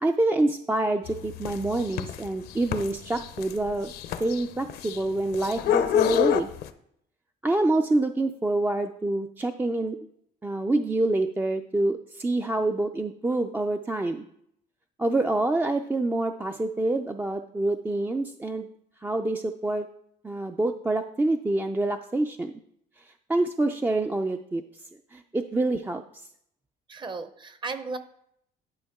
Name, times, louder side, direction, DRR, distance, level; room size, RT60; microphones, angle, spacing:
voice 1, 0.0-3.9 4.2-6.5 7.4-10.0 10.4-14.2 15.0-18.7 19.0-19.9 20.2-22.5 23.3-24.6 25.1-26.0, right 2 dB, 10° right, 6 dB, 0.3 m, -26 dB
sound 1, 1.1-6.7, left 11 dB, 70° left, 0.6 m, -28 dB
voice 2, 26.9-28.0, right 4 dB, 30° right, 11 dB, 0.7 m, -35 dB
11.0 x 5.1 x 3.5 m, 0.72 s
cardioid pair, 110°, 17 cm